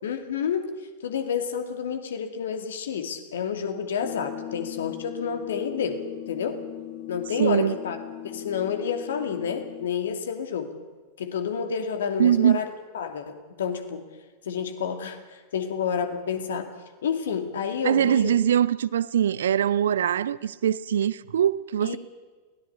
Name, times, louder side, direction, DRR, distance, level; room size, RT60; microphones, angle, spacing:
voice 1, 0.0-0.7 1.0-6.6 7.1-8.0 8.2-10.8 11.2-14.0 14.4-16.7 17.0-18.4 21.8-22.0, left 7 dB, 65° left, 2.5 m, -29 dB
sound 1, 4.0-9.9, left 12 dB, 35° left, 1.2 m, -38 dB
voice 2, 7.4-7.8 12.2-12.6 17.8-22.0, right 9 dB, 65° right, 0.6 m, -22 dB
22.5 x 17.0 x 8.5 m
figure-of-eight pair, 90°, 0 cm